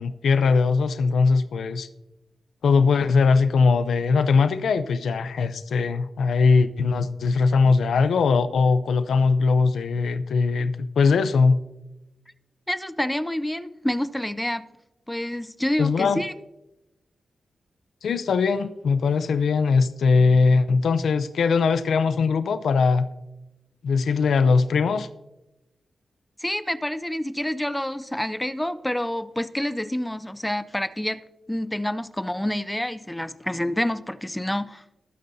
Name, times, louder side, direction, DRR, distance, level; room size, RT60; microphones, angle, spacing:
voice 1, 0.0-1.9 2.6-11.6 15.8-16.2 18.0-23.1 23.8-25.1, left 4 dB, 80° left, 11 dB, 0.5 m, -20 dB
voice 2, 12.7-14.6 15.1-16.3 26.4-31.2 31.5-34.8, left 1 dB, 5° left, 14 dB, 0.4 m, -28 dB
19.0 x 9.5 x 2.7 m, 0.96 s
wide cardioid pair, 145°, 0 cm